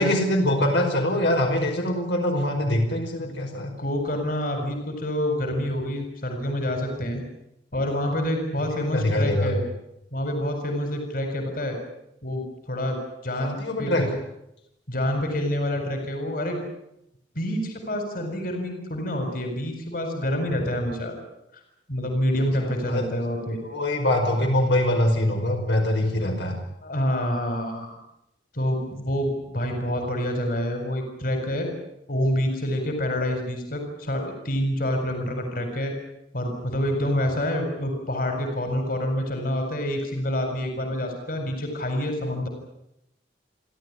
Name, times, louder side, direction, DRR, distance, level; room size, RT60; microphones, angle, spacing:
voice 1, 0.0-3.7 8.7-9.6 13.4-14.1 22.6-23.1 23.6-26.6, left 1 dB, 85° left, 2 dB, 5.3 m, -23 dB
voice 2, 3.2-7.2 7.7-9.6 10.1-11.8 12.2-14.1 14.9-16.6 17.3-21.2 21.9-23.6 26.8-28.0 28.5-31.7 32.1-35.9 36.3-42.5, equal, 55° left, 5 dB, 4.6 m, -27 dB
30.0 x 12.5 x 9.9 m, 0.83 s
head